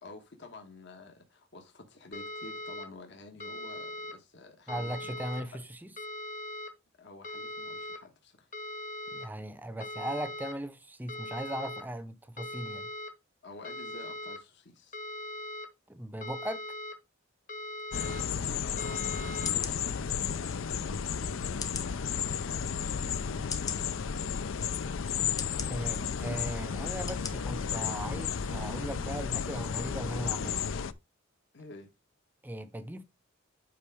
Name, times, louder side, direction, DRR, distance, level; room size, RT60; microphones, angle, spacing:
voice 1, 0.0-5.6 7.0-8.5 13.4-15.0 17.9-24.6 31.5-31.9, left 2 dB, 60° left, 1.3 m, -50 dB
sound 1, 2.1-2.9 3.4-4.1 4.7-5.4 6.0-6.7 7.2-8.0 8.5-9.3 9.8-10.5 11.1-11.8 12.4-13.1 13.6-14.4 14.9-15.7 16.2-16.9 17.5-18.2 18.8-19.5, left 1 dB, 40° left, 1.3 m, -40 dB
voice 2, 4.7-5.9 9.1-12.9 15.9-16.6 25.7-30.7 32.4-33.0, right 1 dB, 10° right, 0.6 m, -38 dB
sound 2, 17.9-30.9, left 7 dB, 75° left, 0.5 m, -33 dB
sound 3, 18.7-18.9 19.4-19.8 20.5-20.6 21.6-21.9 22.6-22.7 23.5-23.8 24.6-24.7 25.4-25.7 26.4-26.5 27.1-27.3 27.8-27.9, left 5 dB, 20° left, 0.9 m, -39 dB
8.4 x 4.8 x 3.5 m
head